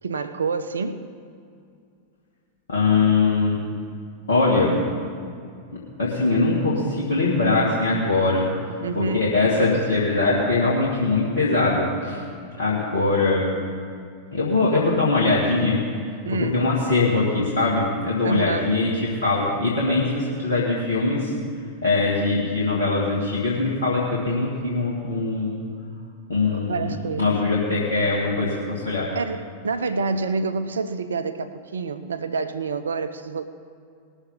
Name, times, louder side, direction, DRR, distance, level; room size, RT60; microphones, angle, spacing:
voice 1, 0.0-1.1 8.8-9.3 16.2-16.7 18.2-18.7 26.5-27.3 29.1-33.5, right 4 dB, 70° right, 10 dB, 0.6 m, -27 dB
voice 2, 2.7-3.6 4.3-4.8 5.7-8.5 8.9-12.2 12.6-13.5 14.3-15.8 16.4-21.3 21.8-25.6 26.3-26.8 27.2-29.1, left 3 dB, 65° left, -5 dB, 2.0 m, -22 dB
19.5 x 7.1 x 5.5 m, 2.4 s
figure-of-eight pair, 90°, 0 cm